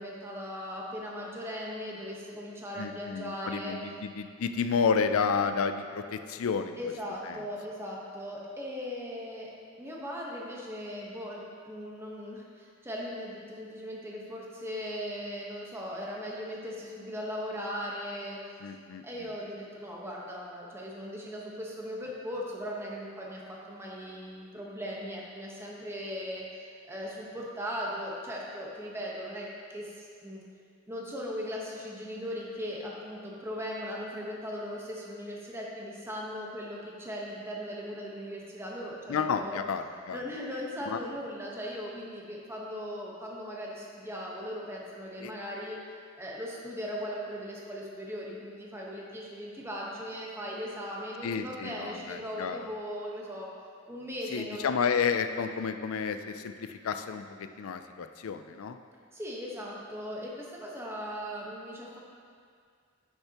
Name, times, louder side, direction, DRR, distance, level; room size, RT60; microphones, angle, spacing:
voice 1, 0.0-3.8 6.8-18.4 19.0-30.4 30.9-39.6 40.1-45.8 46.2-53.5 53.9-54.6 59.1-62.0, equal, 10° right, -4 dB, 1.2 m, -38 dB
voice 2, 2.8-6.8 7.3-7.4 18.6-19.3 39.1-40.2 40.9-41.0 45.2-45.3 51.2-52.6 54.3-58.8, left 6 dB, 75° left, 8 dB, 0.4 m, -31 dB
10.0 x 6.7 x 2.9 m, 2.2 s
head